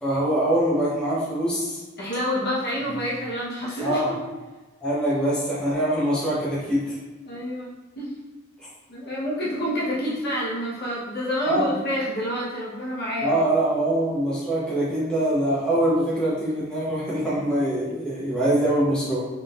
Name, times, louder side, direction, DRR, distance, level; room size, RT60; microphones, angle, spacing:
voice 1, 0.0-1.8 3.8-4.1 4.8-7.0 11.5-11.7 13.2-19.2, right 1 dB, 5° left, -10 dB, 1.0 m, -23 dB
voice 2, 2.0-4.2 7.2-8.1 8.9-13.4, equal, 50° left, -7 dB, 1.1 m, -28 dB
3.8 x 3.5 x 2.5 m, 1.2 s
head